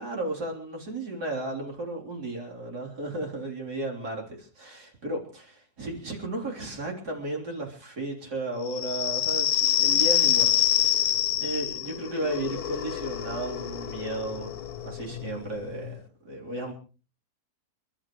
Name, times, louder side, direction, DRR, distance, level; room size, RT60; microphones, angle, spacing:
voice 1, 0.0-11.1 11.4-16.7, right 2 dB, 80° right, 4.2 m, -34 dB
sound 1, 8.7-15.9, left 11 dB, 70° left, 1.4 m, -26 dB
29.0 x 12.5 x 3.1 m
omnidirectional pair, 1.7 m